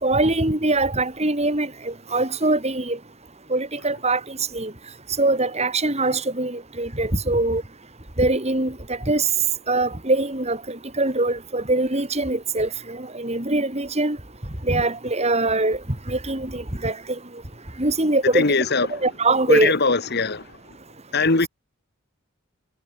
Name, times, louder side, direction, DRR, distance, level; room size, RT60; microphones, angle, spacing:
voice 1, 0.0-3.0 3.5-4.7 5.2-7.6 8.2-9.3 9.7-14.2 14.6-15.8 16.1-17.0 17.8-18.6 18.9-19.7, right 2 dB, 30° right, 3.9 m, -23 dB
voice 2, 18.3-19.0 19.5-20.4 21.1-21.5, left 4 dB, 50° left, 1.5 m, -21 dB
head